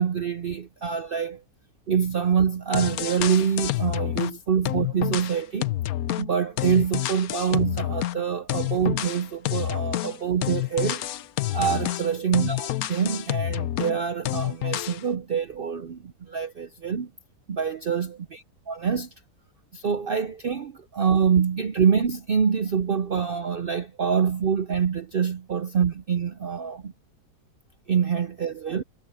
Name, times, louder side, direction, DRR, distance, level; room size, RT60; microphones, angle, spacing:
voice 1, 0.0-1.4 1.9-5.6 6.2-11.0 11.5-17.1 17.5-19.1 19.7-26.9 27.9-28.8, right 7 dB, 75° right, 0.5 m, -25 dB
sound 1, 2.4-2.5 2.7-4.4 4.6-8.2 8.5-14.0 14.2-15.0, left 14 dB, 65° left, 1.1 m, -28 dB
omnidirectional pair, 1.8 m